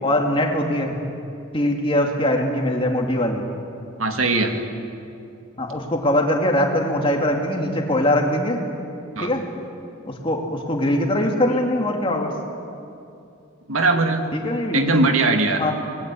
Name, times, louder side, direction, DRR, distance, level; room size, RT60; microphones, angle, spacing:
voice 1, 0.0-1.0 1.5-3.5 5.6-8.6 9.2-9.4 10.0-12.3 14.3-14.9 15.6-15.7, left 1 dB, 25° left, 2 dB, 2.6 m, -22 dB
voice 2, 4.0-4.5 9.2-9.3 13.7-14.3 14.7-15.7, right 3 dB, 80° right, 4 dB, 2.2 m, -20 dB
26.0 x 21.0 x 8.5 m, 2.6 s
head